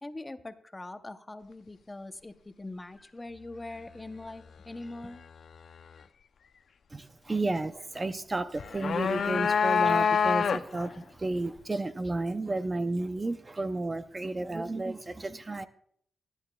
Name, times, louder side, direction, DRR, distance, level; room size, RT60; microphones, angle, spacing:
voice 1, 0.0-5.2, left 2 dB, 15° left, 9 dB, 0.7 m, -42 dB
voice 2, 6.9-15.7, right 2 dB, 25° right, 10 dB, 0.5 m, -32 dB
sound 1, 8.6-10.9, left 6 dB, 65° left, 0.5 m, -26 dB
20.0 x 11.0 x 2.3 m, 0.66 s
cardioid pair, 105°, 0 cm